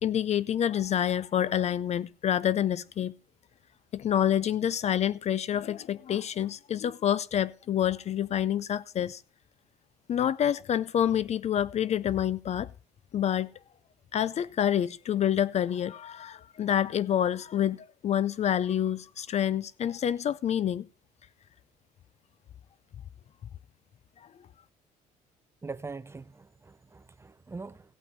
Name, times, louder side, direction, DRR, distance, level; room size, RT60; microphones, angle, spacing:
voice 1, 0.0-3.1 3.9-9.2 10.1-12.7 13.1-13.5 14.1-20.9, left 10 dB, 40° left, 0.4 m, -27 dB
voice 2, 25.6-27.8, right 4 dB, 15° right, 0.5 m, -42 dB
16.5 x 5.8 x 5.4 m
supercardioid pair, 90°, 16 cm